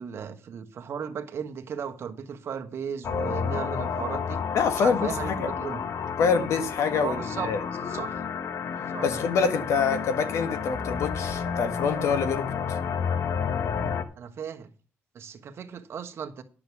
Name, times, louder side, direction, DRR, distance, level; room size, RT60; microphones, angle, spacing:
voice 1, 0.0-4.4 4.8-5.8 6.9-8.2 8.9-9.1 14.2-14.7 15.1-16.4, right 7 dB, 55° right, 6 dB, 1.3 m, -36 dB
sound 1, 3.0-14.0, left 6 dB, 55° left, 1.1 m, -31 dB
voice 2, 4.5-5.5 6.2-7.6 9.0-12.5, left 5 dB, 70° left, 10 dB, 1.5 m, -26 dB
10.5 x 6.1 x 7.0 m, 0.38 s
cardioid pair, 105°, 5 cm